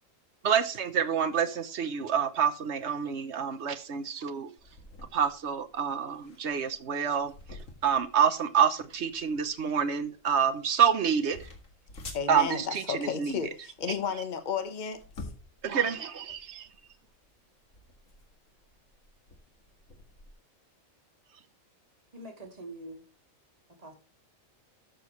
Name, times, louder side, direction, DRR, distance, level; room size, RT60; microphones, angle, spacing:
voice 1, 0.4-4.5 5.1-11.5 12.3-13.4 15.6-16.7, right 7 dB, 60° right, 1.1 m, -28 dB
sound 1, 4.6-20.3, left 2 dB, 75° left, 2.3 m, -50 dB
voice 2, 12.1-15.3, left 6 dB, 35° left, 1.2 m, -33 dB
voice 3, 22.1-23.1 23.7-23.9, right 1 dB, 30° right, 1.7 m, -44 dB
12.5 x 6.9 x 3.2 m
omnidirectional pair, 1.4 m